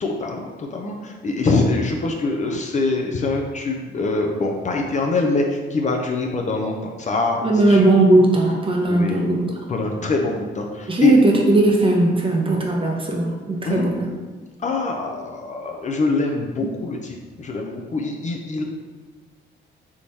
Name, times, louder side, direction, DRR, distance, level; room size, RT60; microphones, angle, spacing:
voice 1, 0.0-7.9 8.9-9.4 9.7-11.2 13.6-13.9 14.6-18.6, left 3 dB, 35° left, 1 dB, 0.6 m, -24 dB
voice 2, 7.4-9.4 10.9-14.1, right 2 dB, 25° right, 0 dB, 0.8 m, -18 dB
3.6 x 3.0 x 4.0 m, 1.3 s
cardioid pair, 90°, 20 cm